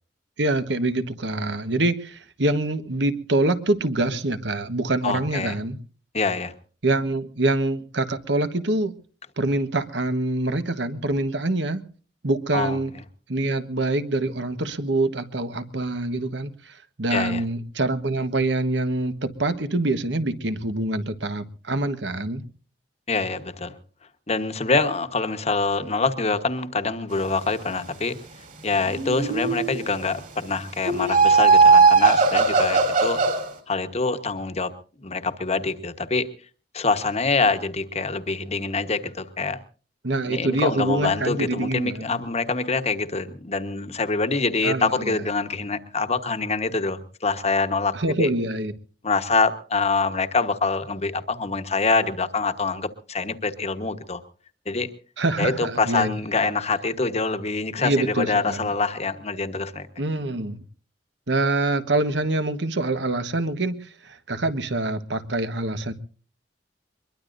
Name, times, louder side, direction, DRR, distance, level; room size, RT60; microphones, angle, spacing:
voice 1, 0.4-5.8 6.8-8.9 9.4-11.8 12.2-12.9 13.3-22.4 40.0-42.1 44.6-45.2 47.9-48.7 55.2-56.2 57.8-58.7 60.0-60.6 61.3-65.9, right 2 dB, 70° right, 1.3 m, -25 dB
voice 2, 5.0-5.5 6.1-6.5 12.5-12.8 17.1-17.4 23.1-23.7 24.3-28.2 28.6-33.2 33.7-34.7 35.0-36.3 36.7-39.6 40.3-48.3 49.0-54.2 54.7-54.9 55.4-59.9, left 4 dB, 35° left, 1.2 m, -25 dB
sound 1, 28.8-29.8 30.9-33.5, right 4 dB, 45° right, 3.9 m, -18 dB
23.0 x 22.5 x 2.6 m
head